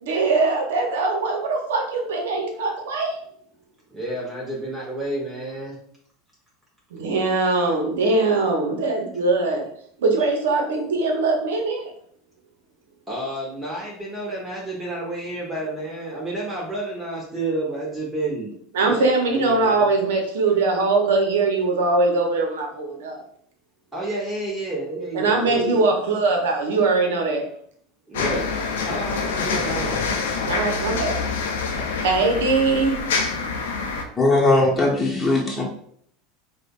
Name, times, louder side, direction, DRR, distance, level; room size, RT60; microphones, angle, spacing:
voice 1, 0.0-3.2 6.9-9.6 10.0-11.9 18.7-23.2 25.1-27.5 30.4-31.2 32.0-33.0, right 3 dB, 75° right, 2 dB, 0.7 m, -21 dB
voice 2, 3.9-5.8 10.2-10.3 13.1-18.5 18.8-19.0 19.3-19.9 23.9-25.9 28.1-28.5 28.8-30.0, right 2 dB, 15° right, -5 dB, 1.0 m, -30 dB
sound 1, 28.1-34.0, left 4 dB, 75° left, 0.5 m, -26 dB
voice 3, 34.2-35.6, left 2 dB, 15° left, -4 dB, 1.1 m, -19 dB
4.9 x 2.2 x 2.4 m, 0.64 s
hypercardioid pair, 80°, 0 cm